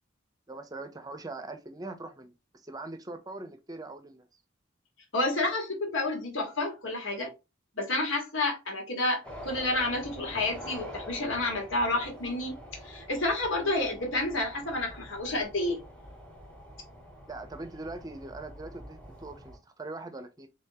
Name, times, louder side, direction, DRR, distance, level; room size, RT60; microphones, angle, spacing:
voice 1, 0.5-2.3 2.6-4.3 17.3-20.5, right 2 dB, 20° right, 0.6 m, -41 dB
voice 2, 5.1-7.3 7.7-12.6 12.8-15.8, left 2 dB, 80° left, 1.4 m, -30 dB
sound 1, 9.2-19.6, equal, 5° left, 1.1 m, -46 dB
3.5 x 3.5 x 2.7 m
head